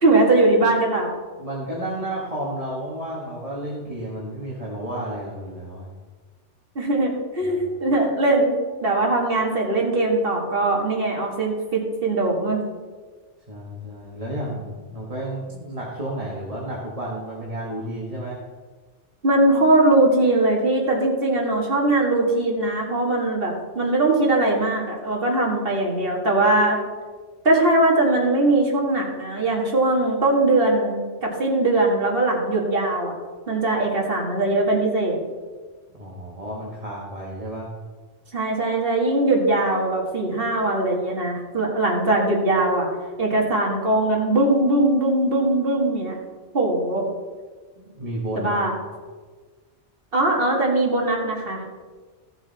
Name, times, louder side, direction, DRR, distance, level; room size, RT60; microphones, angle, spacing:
voice 1, 0.0-1.1 6.8-12.6 19.2-26.8 27.4-33.1 33.5-35.2 38.3-42.9 43.2-46.2 46.5-47.0 48.4-48.7 50.1-51.6, right 2 dB, 50° right, -1 dB, 2.2 m, -21 dB
voice 2, 1.4-5.9 7.4-7.6 13.5-18.4 35.9-37.7 47.8-48.6, right 1 dB, 30° right, -5 dB, 1.8 m, -32 dB
14.5 x 7.1 x 4.2 m, 1.4 s
omnidirectional pair, 1.2 m